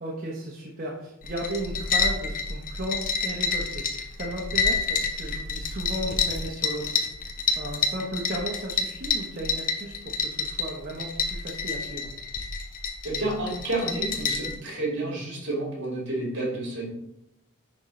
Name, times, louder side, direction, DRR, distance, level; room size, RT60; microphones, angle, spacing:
voice 1, 0.0-6.9 7.6-12.1, right 1 dB, 40° right, -3 dB, 1.0 m, -35 dB
sound 1, 1.2-14.5, left 5 dB, 40° left, 0.8 m, -29 dB
voice 2, 13.0-16.9, right 2 dB, 55° right, -2 dB, 2.5 m, -30 dB
10.5 x 3.9 x 3.2 m, 0.82 s
head